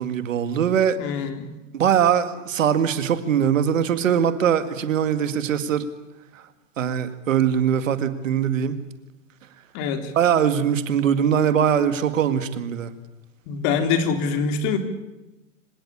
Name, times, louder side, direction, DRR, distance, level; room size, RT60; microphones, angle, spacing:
voice 1, 0.0-1.0 1.7-5.9 6.8-8.8 10.2-12.9, right 8 dB, 80° right, 10 dB, 2.2 m, -21 dB
voice 2, 1.0-1.5 9.7-10.1 13.5-14.8, left 5 dB, 50° left, 6 dB, 3.8 m, -24 dB
25.5 x 18.0 x 8.7 m, 1.0 s
hypercardioid pair, 105°, 39 cm